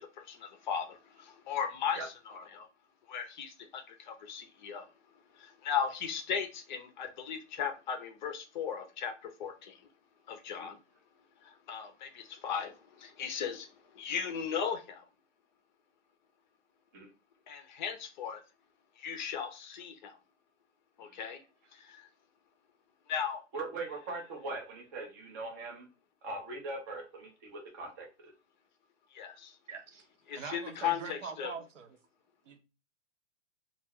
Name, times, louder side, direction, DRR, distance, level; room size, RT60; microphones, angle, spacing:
voice 1, 0.0-2.7 3.1-4.9 5.4-9.1 9.4-9.7 10.3-10.8 11.7-12.7 13.0-13.7 14.0-15.0 17.5-18.4 19.0-20.1 21.0-21.4 23.1-23.4 29.1-29.5 30.3-31.5, left 7 dB, 40° left, 0.5 m, -36 dB
voice 2, 23.5-25.9 26.2-28.1, right 2 dB, 20° right, 0.3 m, -40 dB
voice 3, 29.7-30.1 30.3-32.0 32.4-32.6, right 5 dB, 75° right, 0.7 m, -43 dB
2.3 x 2.2 x 3.3 m
hypercardioid pair, 130°, 38 cm